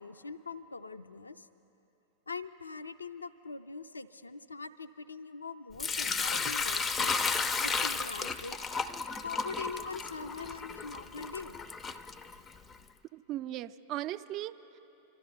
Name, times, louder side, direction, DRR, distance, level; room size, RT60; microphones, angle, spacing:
voice 1, 0.0-1.5 2.3-7.1 7.6-8.6 9.2-11.6, left 4 dB, 80° left, 12 dB, 0.4 m, -42 dB
Sink (filling or washing) / Liquid, 5.8-12.7, left 4 dB, 20° left, 0.4 m, -33 dB
voice 2, 13.1-14.8, right 13 dB, 35° right, 12 dB, 0.4 m, -38 dB
26.5 x 12.5 x 3.3 m, 2.9 s
figure-of-eight pair, 90°, 0 cm